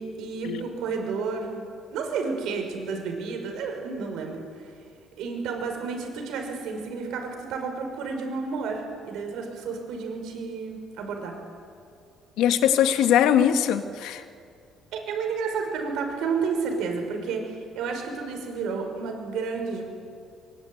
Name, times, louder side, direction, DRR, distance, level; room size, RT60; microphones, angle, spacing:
voice 1, 0.0-4.7 5.2-11.4 14.9-19.8, right 5 dB, 70° right, 3 dB, 6.0 m, -31 dB
voice 2, 12.4-14.2, left 9 dB, 75° left, 8 dB, 1.7 m, -21 dB
24.0 x 23.0 x 9.4 m, 2.4 s
cardioid pair, 155°, 0 cm